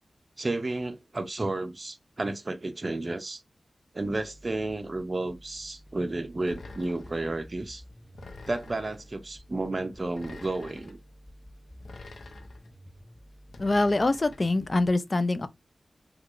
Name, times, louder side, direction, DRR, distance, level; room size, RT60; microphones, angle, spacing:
voice 1, 0.4-3.4 3.9-7.8 8.5-11.0, right 2 dB, 35° right, 0.5 m, -32 dB
sound 1, 4.0-14.9, equal, 20° left, 0.9 m, -51 dB
sound 2, 6.4-7.2 8.1-9.1 10.1-11.0 11.8-12.7 13.5-14.5, left 3 dB, 80° left, 0.7 m, -47 dB
voice 2, 13.6-15.5, left 2 dB, 40° left, 0.4 m, -24 dB
4.5 x 2.3 x 2.5 m
wide cardioid pair, 80°, 0 cm